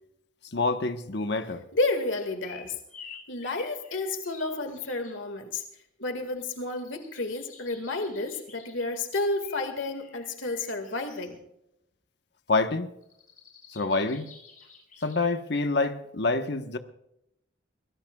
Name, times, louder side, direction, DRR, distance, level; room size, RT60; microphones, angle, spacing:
voice 1, 0.4-1.6 12.5-12.9 13.7-14.3 15.0-16.8, left 3 dB, 60° left, 1.2 m, -27 dB
voice 2, 1.7-2.7 3.3-5.6 6.0-11.4, left 2 dB, 85° left, 2.0 m, -31 dB
sound 1, 2.2-5.2 6.3-8.9 9.3-11.3 13.0-15.3, left 6 dB, 45° left, 5.7 m, -50 dB
23.5 x 17.5 x 2.4 m
head